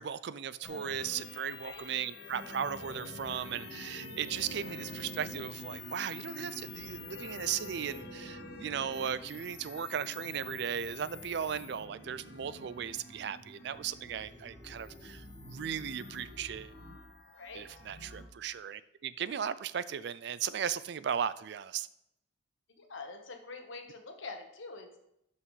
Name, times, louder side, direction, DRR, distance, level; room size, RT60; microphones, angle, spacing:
voice 1, 0.0-16.7 17.5-21.9, right 8 dB, 55° right, 16 dB, 0.3 m, -37 dB
sound 1, 0.6-18.2, left 2 dB, 60° left, 1.9 m, -46 dB
voice 2, 22.8-25.0, left 3 dB, 80° left, 4 dB, 1.3 m, -45 dB
12.5 x 5.5 x 3.2 m, 0.81 s
head